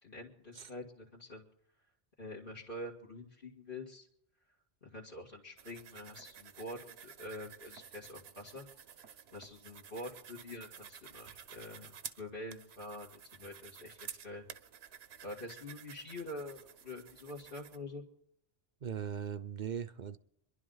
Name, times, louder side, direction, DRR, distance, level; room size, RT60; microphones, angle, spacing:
voice 1, 0.0-1.4 2.2-4.1 4.8-8.7 9.0-14.4 15.2-18.0, left 1 dB, 55° left, 2.2 m, -46 dB
sound 1, 5.6-17.8, right 7 dB, 80° right, 1.1 m, -52 dB
voice 2, 18.8-20.2, right 8 dB, 50° right, 0.7 m, -39 dB
27.0 x 11.5 x 3.9 m
omnidirectional pair, 1.1 m